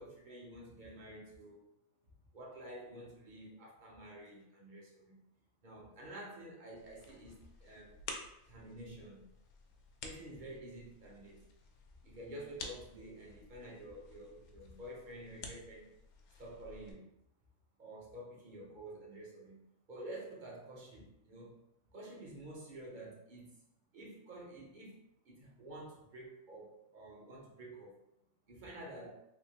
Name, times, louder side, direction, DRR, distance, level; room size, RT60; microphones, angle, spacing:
voice 1, 0.0-1.7 2.3-5.2 5.6-8.0 8.5-9.2 10.0-11.4 12.0-15.9 16.4-17.1 17.8-19.6 19.9-21.6 21.9-23.6 23.9-27.9 28.5-29.2, right 1 dB, 45° right, -3 dB, 0.7 m, -50 dB
sound 1, 6.8-16.9, left 4 dB, 90° left, 1.1 m, -52 dB
3.3 x 2.7 x 2.8 m, 0.82 s
omnidirectional pair, 1.5 m